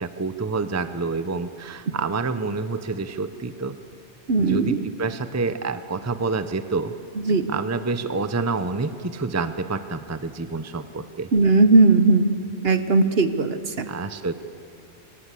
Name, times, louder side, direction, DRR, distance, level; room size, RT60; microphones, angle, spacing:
voice 1, 0.0-3.7 4.4-6.9 7.5-11.3 13.9-14.3, right 4 dB, 15° right, 11 dB, 0.7 m, -28 dB
voice 2, 4.3-4.8 7.3-7.5 11.3-13.8, right 3 dB, 60° right, 11 dB, 1.3 m, -18 dB
24.5 x 18.5 x 8.3 m, 2.7 s
omnidirectional pair, 1.2 m